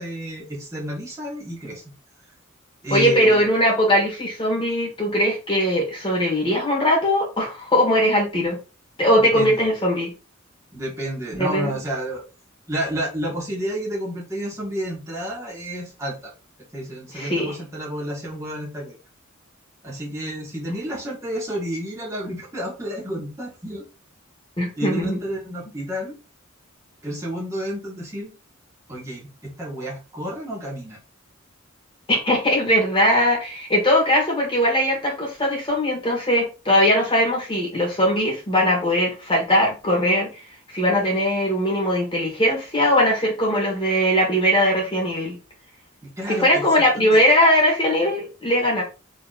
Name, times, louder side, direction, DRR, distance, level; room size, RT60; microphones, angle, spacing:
voice 1, 0.0-1.8 2.8-3.4 9.2-9.6 10.7-12.2 12.7-16.3 16.7-19.0 19.8-23.8 24.8-26.1 27.0-28.3 28.9-31.0 46.0-46.8 47.1-47.2, right 1 dB, 15° right, -4 dB, 1.5 m, -30 dB
voice 2, 2.9-8.6 9.0-10.1 11.4-11.7 17.1-17.5 24.6-25.2 32.1-40.3 40.7-45.3 46.3-48.8, equal, 25° left, -1 dB, 1.7 m, -20 dB
4.0 x 3.2 x 2.5 m, 0.31 s
head